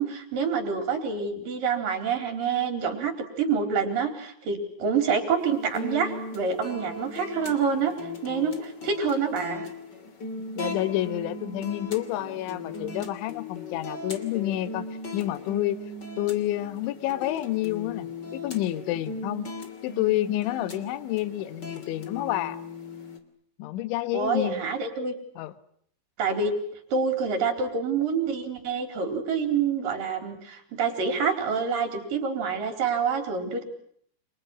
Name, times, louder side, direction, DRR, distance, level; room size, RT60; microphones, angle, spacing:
voice 1, 0.0-3.1 3.4-7.9 8.2-9.7 24.1-25.1 26.2-26.6 26.9-33.6, right 5 dB, 45° right, 7 dB, 5.4 m, -27 dB
sound 1, 5.4-23.2, left 3 dB, 30° left, 2.4 m, -38 dB
voice 2, 10.5-14.9 15.1-15.8 16.2-19.5 19.8-22.6 23.6-24.6 25.4-25.5, left 14 dB, 75° left, 13 dB, 3.6 m, -29 dB
30.0 x 29.0 x 6.1 m, 0.66 s
omnidirectional pair, 5.8 m